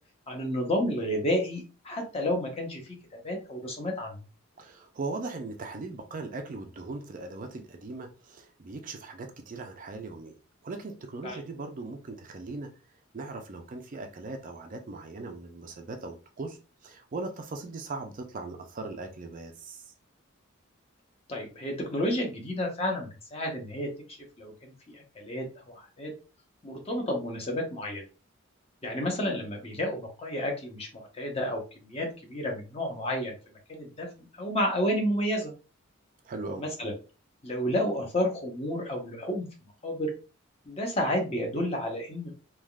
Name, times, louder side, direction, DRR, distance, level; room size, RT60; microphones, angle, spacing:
voice 1, 0.3-3.0 3.2-4.2 11.2-11.4 21.3-26.1 26.6-28.0 28.8-33.4 33.7-34.1 34.3-35.5 36.6-36.9 37.4-39.5 39.8-40.1 40.7-42.3, equal, 30° left, 0.8 m, -31 dB
voice 2, 4.6-10.3 10.6-12.7 13.1-19.9 36.2-36.6, right 3 dB, 40° right, 0.4 m, -39 dB
3.4 x 2.3 x 2.3 m
head